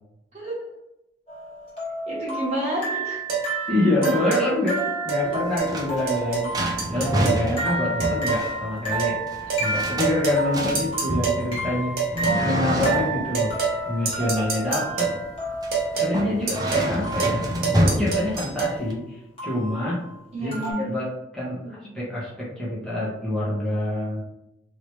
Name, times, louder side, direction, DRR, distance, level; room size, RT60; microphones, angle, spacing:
sound 1, 1.3-17.7 19.4-19.9 20.5-20.7, right 2 dB, 30° left, 1.3 m, -31 dB
voice 1, 2.1-3.2 20.3-20.9 21.6-22.0 22.7-23.9, right 1 dB, 40° right, -6 dB, 1.2 m, -32 dB
sound 2, 3.3-3.5 4.0-4.5 5.1-5.2 5.6-5.7 6.1-6.5 6.8-7.5 8.0-8.5 9.0-9.2 9.5-9.7 10.0-10.4 10.7-11.4 12.0-12.4 12.8-13.0 13.3-13.8 14.0-15.2 15.7-16.1 16.5-16.9 17.2-17.4 17.6-18.7, right 6 dB, 55° right, 1.3 m, -26 dB
voice 2, 3.7-6.5 6.9-9.2 9.6-12.1 12.4-13.5 13.9-15.1 16.0-17.4 17.7-20.0 20.4-20.5 20.8-21.1 21.3-24.2, left 1 dB, 5° left, -9 dB, 1.1 m, -26 dB
sound 3, 5.3-18.9, equal, 20° right, 0.5 m, -29 dB
3.1 x 2.9 x 3.1 m, 0.88 s
head